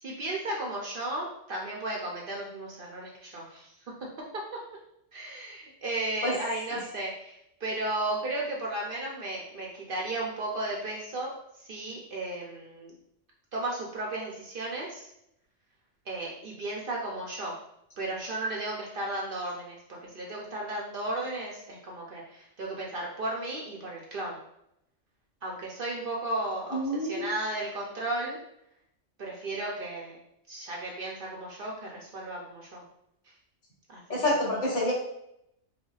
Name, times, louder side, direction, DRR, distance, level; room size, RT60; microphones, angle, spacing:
voice 1, 0.0-3.7 4.0-4.6 5.1-12.9 13.5-15.1 16.1-17.5 18.0-24.4 25.4-28.4 29.2-30.2 30.5-32.8 33.9-34.3, right 2 dB, 55° right, -2 dB, 0.7 m, -34 dB
voice 2, 26.7-27.3 34.1-34.9, left 1 dB, 70° left, -5 dB, 1.6 m, -27 dB
5.0 x 2.2 x 2.4 m, 0.78 s
omnidirectional pair, 1.3 m